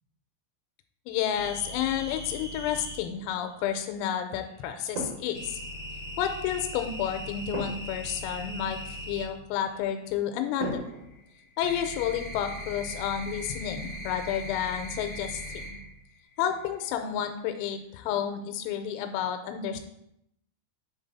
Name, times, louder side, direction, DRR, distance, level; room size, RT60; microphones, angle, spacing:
voice 1, 1.1-5.6 6.2-10.9 11.6-15.8 16.4-19.8, left 9 dB, 90° left, 7 dB, 3.3 m, -31 dB
sound 1, 1.3-3.0 5.3-9.2 10.6-15.9 16.2-16.8, equal, 75° left, 1.2 m, -39 dB
sound 2, 4.9-5.5 7.5-8.0 10.6-11.8 15.2-15.6, right 2 dB, 75° right, 2.7 m, -37 dB
7.9 x 3.8 x 4.0 m, 0.78 s
omnidirectional pair, 5.9 m